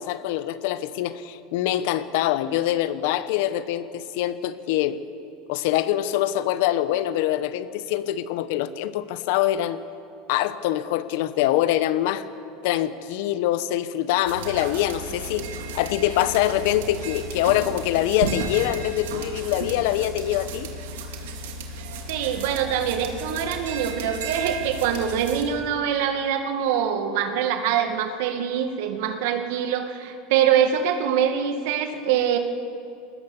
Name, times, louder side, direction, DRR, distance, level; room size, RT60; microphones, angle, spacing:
voice 1, 0.0-5.0 5.5-9.8 10.3-12.2 12.6-15.5 15.7-20.7, left 13 dB, 70° left, 13 dB, 1.1 m, -24 dB
sound 1, 14.2-25.4, right 3 dB, 85° right, 2.7 m, -34 dB
voice 2, 22.1-32.4, right 9 dB, 70° right, 6 dB, 2.0 m, -24 dB
20.0 x 19.0 x 7.2 m, 2.6 s
supercardioid pair, 125°, 0 cm